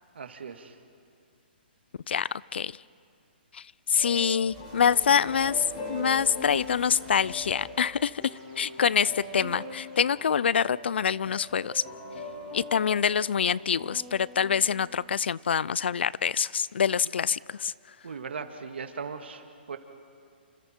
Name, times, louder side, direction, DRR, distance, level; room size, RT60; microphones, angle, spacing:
voice 1, 0.2-0.7 17.0-17.1 18.0-19.4 19.7-19.8, right 5 dB, 85° right, 6 dB, 2.1 m, -38 dB
voice 2, 2.1-2.7 3.9-8.1 8.6-11.8 12.5-17.7, left 7 dB, 75° left, 22 dB, 0.4 m, -25 dB
sound 1, 4.0-15.0, left 2 dB, 35° left, 6.6 m, -42 dB
sound 2, 4.5-10.0, right 3 dB, 25° right, 5.5 m, -52 dB
28.0 x 26.5 x 4.5 m, 2.4 s
hypercardioid pair, 165°, 6 cm